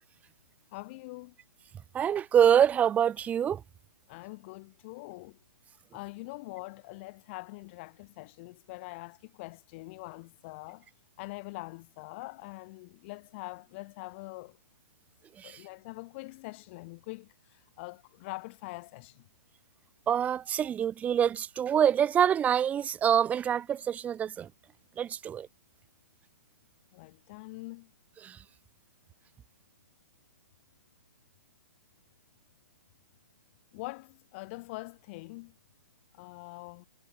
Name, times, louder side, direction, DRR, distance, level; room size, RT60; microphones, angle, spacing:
voice 1, 0.7-1.3 4.1-5.4 5.9-10.9 11.2-14.6 15.4-19.3 26.9-27.9 33.7-35.5 36.1-36.9, left 23 dB, 35° left, 2.7 m, -44 dB
voice 2, 1.9-3.6 15.4-15.6 20.1-24.5 25.0-25.5 28.2-28.4, right 9 dB, 15° right, 0.7 m, -25 dB
hypercardioid pair, 140°, 10 cm